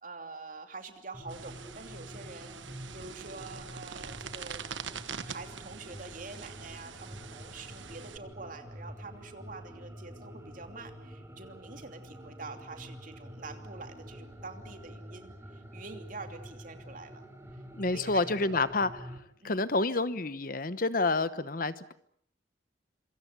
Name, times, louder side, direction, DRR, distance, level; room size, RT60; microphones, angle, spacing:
voice 1, 0.0-2.6 2.9-4.6 5.2-17.3 17.9-18.6 19.4-19.6, right 3 dB, 45° right, 6 dB, 2.9 m, -46 dB
sound 1, 1.1-19.2, equal, 15° right, 3.6 m, -47 dB
sound 2, 1.3-8.2, right 6 dB, 80° right, 1.4 m, -44 dB
voice 2, 17.8-18.9 19.4-21.9, left 3 dB, 45° left, 14 dB, 1.0 m, -28 dB
27.0 x 24.5 x 7.0 m, 0.65 s
head